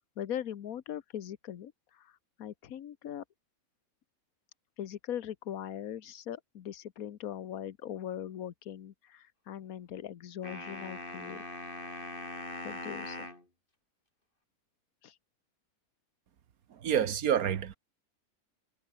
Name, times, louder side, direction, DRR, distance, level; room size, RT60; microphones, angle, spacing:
voice 1, 0.2-3.2 4.8-11.4 12.6-13.3 15.0-15.2, left 10 dB, 75° left, 1.5 m, -40 dB
sound 1, 10.4-13.4, left 2 dB, 35° left, 4.6 m, -41 dB
voice 2, 16.7-17.8, right 9 dB, 80° right, 1.6 m, -28 dB
omnidirectional pair, 1.5 m